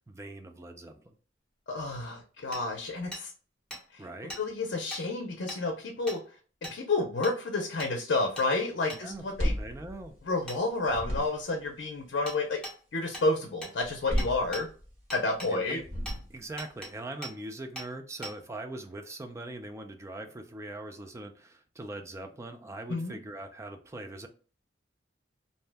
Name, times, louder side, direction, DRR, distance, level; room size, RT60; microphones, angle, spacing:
voice 1, 0.1-1.2 4.0-4.4 9.0-9.2 9.6-10.2 15.5-15.9 16.3-24.3, right 2 dB, 15° right, 5 dB, 0.3 m, -41 dB
voice 2, 1.7-3.3 3.9-4.0 4.4-6.2 6.7-9.5 10.3-12.6 12.9-14.7 15.1-15.8 22.9-23.2, left 3 dB, 70° left, 2 dB, 0.5 m, -30 dB
Hammer, 2.5-2.6 3.1-3.2 3.7-3.8 4.3-4.4 4.9-5.0 5.5-5.6 6.1-6.2 6.6-6.8 7.2-7.4 7.8-7.9 8.4-8.5 8.9-9.0 10.5-10.6 12.3-12.4 12.6-12.8 13.1-13.3 13.6-13.7 14.2-14.6 15.1-15.5 16.1-16.2 16.6-16.9 17.2-17.3 17.8-17.9 18.2-18.3, equal, 5° left, 0.9 m, -40 dB
sound 1, 9.1-10.6 10.8-11.6 13.8-15.0 15.8-16.6, equal, 50° right, 1.2 m, -33 dB
2.6 x 2.1 x 3.3 m, 0.40 s
head